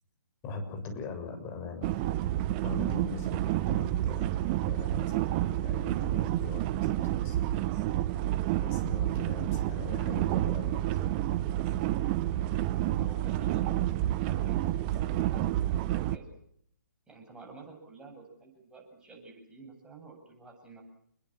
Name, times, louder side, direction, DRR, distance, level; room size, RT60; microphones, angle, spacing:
voice 1, 0.4-1.9 2.6-7.8 8.6-11.1, left 4 dB, 25° left, 6 dB, 6.9 m, -42 dB
sound 1, 1.8-16.2, right 13 dB, 30° right, 1.1 m, -29 dB
voice 2, 12.9-16.3 17.1-20.8, right 4 dB, 10° right, 1 dB, 7.9 m, -50 dB
29.0 x 21.5 x 7.6 m, 0.69 s
figure-of-eight pair, 130°, 10 cm